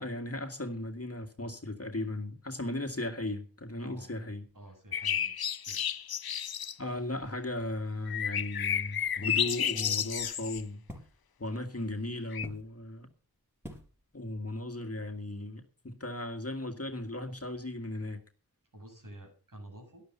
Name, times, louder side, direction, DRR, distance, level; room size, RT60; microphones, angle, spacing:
voice 1, 0.0-4.4 6.8-10.8 11.4-13.1 14.1-18.2, left 1 dB, 40° left, 2.0 m, -36 dB
voice 2, 3.8-4.1 4.5-5.8 18.7-20.0, right 1 dB, 55° right, 7.2 m, -50 dB
sound 1, 4.9-6.7 8.1-10.6 12.3-12.5, left 8 dB, 70° left, 0.6 m, -31 dB
sound 2, 9.1-11.1 12.4-12.7 13.6-13.9 14.2-14.6 14.8-15.0, equal, 5° right, 5.4 m, -48 dB
12.0 x 12.0 x 5.7 m
wide cardioid pair, 65°, 38 cm